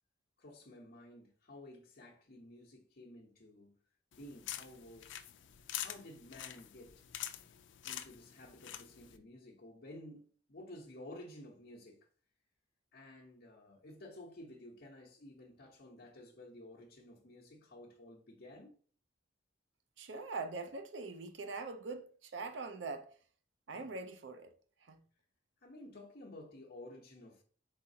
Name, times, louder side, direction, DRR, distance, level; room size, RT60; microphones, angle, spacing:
voice 1, 0.4-3.7 4.1-5.2 5.8-7.0 7.8-12.0 12.9-18.8 23.7-24.0 25.6-27.4, left 1 dB, 55° left, 0.9 m, -53 dB
sound 1, 4.1-9.2, left 12 dB, 90° left, 0.4 m, -46 dB
voice 2, 20.0-23.2 23.7-24.5 24.8-25.0, right 3 dB, 80° right, 0.6 m, -43 dB
4.0 x 4.0 x 2.7 m
head